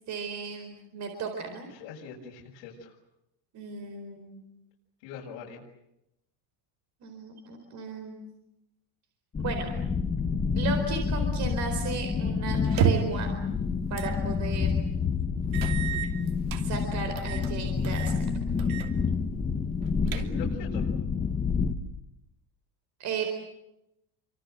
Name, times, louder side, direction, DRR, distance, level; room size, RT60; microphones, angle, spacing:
voice 1, 0.1-1.7 3.5-4.5 7.0-8.3 9.4-9.7 10.5-13.4 13.9-14.7 16.6-18.1 23.0-23.3, right 5 dB, 35° right, 5 dB, 4.4 m, -35 dB
voice 2, 1.7-3.0 5.0-5.6 20.1-20.9, left 5 dB, 65° left, -2 dB, 6.7 m, -42 dB
sound 1, 9.3-21.7, left 5 dB, 15° left, 1.3 m, -28 dB
sound 2, 12.6-13.3 14.0-14.2 14.6-14.7 15.5-16.6 17.2-17.5 17.8-18.2 18.6-18.9 19.2-19.3 19.8-20.6, right 7 dB, 65° right, 2.9 m, -30 dB
29.5 x 25.0 x 7.9 m, 0.85 s
cardioid pair, 175°, 48 cm